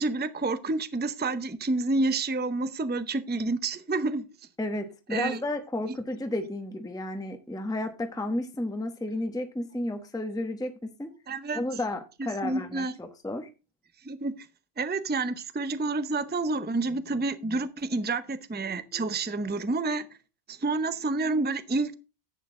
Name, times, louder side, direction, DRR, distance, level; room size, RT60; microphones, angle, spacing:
voice 1, 0.0-4.2 5.1-5.4 5.9-6.0 11.3-11.6 12.4-12.9 14.0-14.5 14.8-20.1 20.5-21.9, right 3 dB, 10° right, 0.5 m, -29 dB
voice 2, 4.6-11.1 11.5-13.5, left 1 dB, 5° left, 1.0 m, -32 dB
11.0 x 8.4 x 3.8 m
omnidirectional pair, 1.2 m